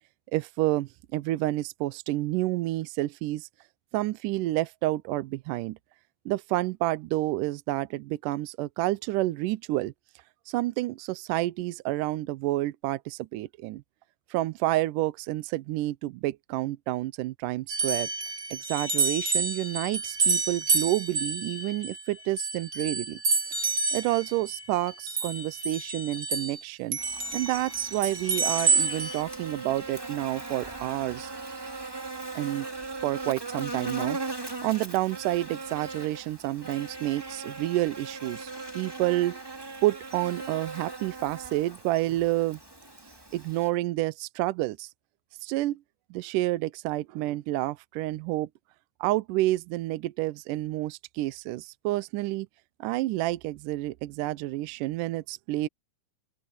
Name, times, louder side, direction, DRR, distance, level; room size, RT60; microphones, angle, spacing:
voice 1, 0.3-3.5 3.9-5.8 6.3-9.9 10.5-13.8 14.3-18.1 18.5-23.2 23.9-27.0 27.3-31.3 32.4-38.5 38.8-39.4 39.8-42.6 43.3-44.9 45.4-45.8 46.1-48.5 49.0-52.5 52.8-55.7, right 17 dB, 80° right, 2.1 m, -29 dB
sound 1, 17.7-26.6 26.9-29.2, right 4 dB, 35° right, 1.7 m, -29 dB
Buzz, 27.0-43.7, right 3 dB, 10° right, 1.7 m, -39 dB
open air
omnidirectional pair, 3.9 m